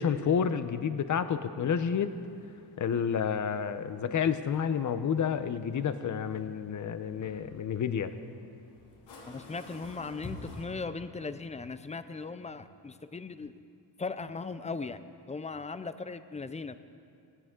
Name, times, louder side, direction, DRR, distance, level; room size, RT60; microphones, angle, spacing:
voice 1, 0.0-2.1 2.8-8.1, left 7 dB, 40° left, 11 dB, 0.8 m, -30 dB
sound 1, 2.1-10.7, left 3 dB, 90° left, 3.9 m, -51 dB
voice 2, 9.3-13.5 14.0-16.8, left 4 dB, 15° left, 12 dB, 0.5 m, -38 dB
18.0 x 17.5 x 3.8 m, 2.5 s
cardioid pair, 120°, 44 cm